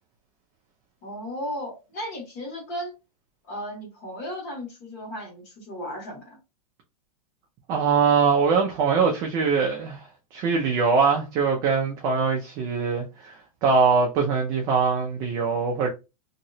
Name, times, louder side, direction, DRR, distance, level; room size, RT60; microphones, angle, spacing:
voice 1, 1.0-2.9 3.5-6.4, equal, 35° left, 1.5 m, -35 dB
voice 2, 7.7-13.4 13.6-15.9, right 5 dB, 20° right, 0.4 m, -22 dB
3.0 x 2.8 x 2.6 m
supercardioid pair, 170°, 20 cm